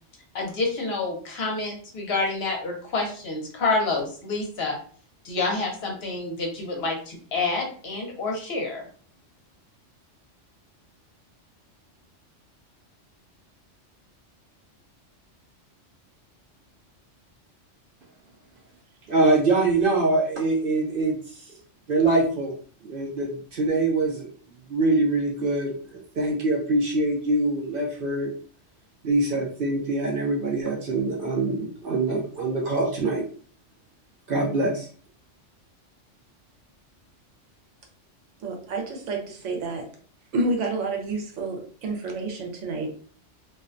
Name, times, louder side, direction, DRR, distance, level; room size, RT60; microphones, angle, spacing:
voice 1, 0.3-4.8 5.2-8.8, left 3 dB, 60° left, 1 dB, 0.9 m, -28 dB
voice 2, 19.1-21.6 21.9-22.5 22.8-24.3 24.7-28.3 29.0-33.3 34.3-34.9, right 2 dB, 60° right, -1 dB, 0.6 m, -24 dB
voice 3, 38.4-39.9 40.3-42.9, right 2 dB, 80° right, 3 dB, 1.0 m, -29 dB
2.5 x 2.1 x 2.5 m, 0.44 s
omnidirectional pair, 1.2 m